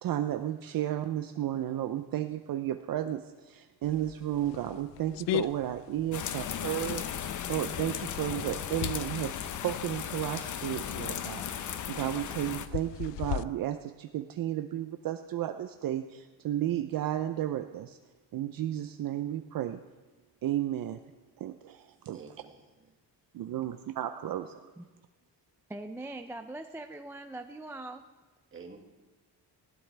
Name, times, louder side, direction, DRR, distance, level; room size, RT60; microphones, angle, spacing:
voice 1, 0.0-18.0 18.3-19.8 20.4-21.0 21.4-22.2 23.3-24.7, right 12 dB, 55° right, 8 dB, 0.6 m, -33 dB
sound 1, 3.8-13.4, left 14 dB, 85° left, 0.6 m, -40 dB
sound 2, 6.1-12.7, left 9 dB, 45° left, 0.7 m, -36 dB
voice 2, 22.1-22.9 28.5-28.8, right 5 dB, 30° right, 2 dB, 1.9 m, -49 dB
voice 3, 25.7-28.0, right 2 dB, 5° right, 6 dB, 0.4 m, -41 dB
19.5 x 15.5 x 3.4 m, 1.3 s
cardioid pair, 180°, 41 cm